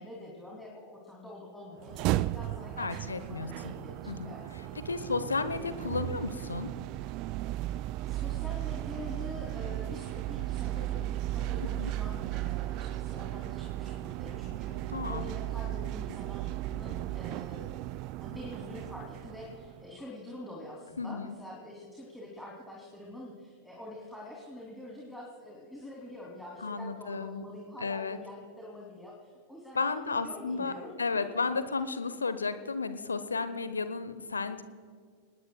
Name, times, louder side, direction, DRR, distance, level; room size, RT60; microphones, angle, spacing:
voice 1, 0.0-5.5 8.1-17.8 18.2-31.2, left 1 dB, ahead, -4 dB, 3.1 m, -46 dB
sound 1, 1.8-19.9, right 15 dB, 40° right, 0.3 m, -35 dB
voice 2, 2.8-3.7 4.1-6.7 11.8-11.9 14.9-15.3 21.0-21.4 26.6-27.4 27.8-28.2 29.7-30.7 31.0-34.6, left 4 dB, 75° left, 12 dB, 1.0 m, -33 dB
27.5 x 19.5 x 2.3 m, 2.1 s
figure-of-eight pair, 90°, 0 cm